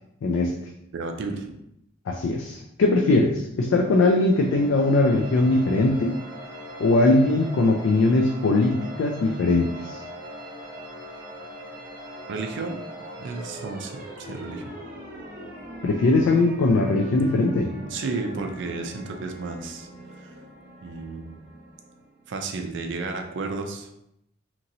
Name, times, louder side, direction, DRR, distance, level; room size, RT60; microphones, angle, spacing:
voice 1, 0.2-0.5 2.1-6.2 6.8-10.0 15.8-17.7, left 2 dB, 70° left, 2 dB, 0.3 m, -20 dB
voice 2, 0.9-1.5 12.3-12.8 13.2-14.7 17.8-19.9 20.2-20.4 20.8-21.4 22.3-23.9, right 3 dB, 65° right, 4 dB, 0.4 m, -32 dB
sound 1, 3.8-22.4, equal, 45° right, 0.8 m, -41 dB
2.9 x 2.7 x 2.6 m, 0.80 s
head